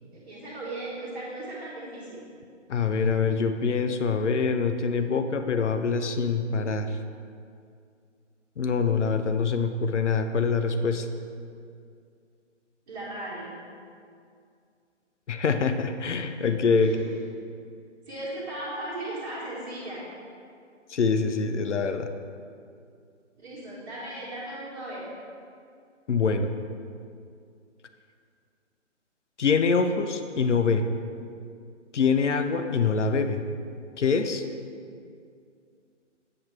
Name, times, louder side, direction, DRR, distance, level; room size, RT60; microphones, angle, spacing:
voice 1, 0.1-2.3 12.9-13.6 16.8-17.0 18.1-20.0 23.4-25.1, right 1 dB, 40° right, -8 dB, 1.3 m, -37 dB
voice 2, 2.7-7.0 8.6-11.1 15.3-17.1 20.9-22.1 26.1-26.5 29.4-30.9 31.9-33.4 34.0-34.4, left 5 dB, 70° left, 8 dB, 0.6 m, -25 dB
7.8 x 5.8 x 3.2 m, 2.3 s
figure-of-eight pair, 140°, 37 cm